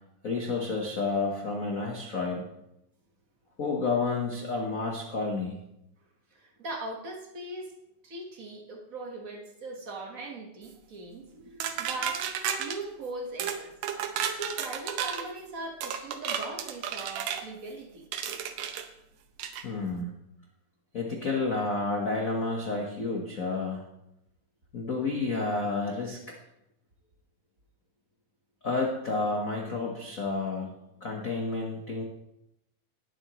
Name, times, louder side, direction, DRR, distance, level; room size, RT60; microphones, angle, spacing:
voice 1, 0.2-2.4 3.6-5.6 11.4-11.5 19.6-20.1 20.9-23.8 24.7-26.2 28.6-30.7 31.0-32.0, left 3 dB, 80° left, 0 dB, 0.7 m, -30 dB
voice 2, 6.3-7.7 8.0-11.3 11.8-13.7 14.3-18.1, right 2 dB, 45° right, 0 dB, 1.1 m, -40 dB
sound 1, 11.6-12.8 13.4-13.6 13.8-15.3 15.8-17.4 18.1-18.8 19.4-19.6, right 8 dB, 70° right, 1.9 m, -32 dB
18.5 x 7.8 x 3.1 m, 0.85 s
omnidirectional pair, 3.6 m